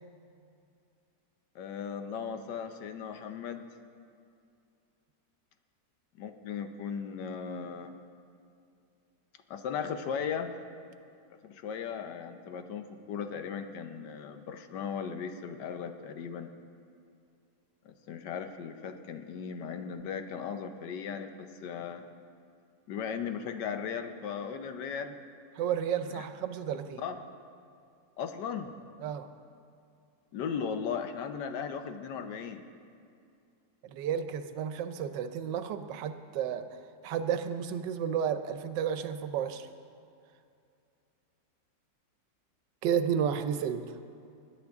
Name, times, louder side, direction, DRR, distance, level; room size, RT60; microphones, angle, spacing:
voice 1, 1.5-3.7 6.2-7.9 9.5-10.5 11.4-16.5 17.8-22.0 22.9-25.2 26.1-26.2 27.0-27.2 28.2-28.7 30.3-32.6, left 7 dB, 75° left, 8 dB, 1.3 m, -37 dB
voice 2, 25.6-27.0 29.0-29.3 33.9-36.6 37.0-39.7 42.8-44.0, right 8 dB, 80° right, 9 dB, 1.3 m, -32 dB
20.0 x 10.5 x 3.6 m, 2.4 s
omnidirectional pair, 1.9 m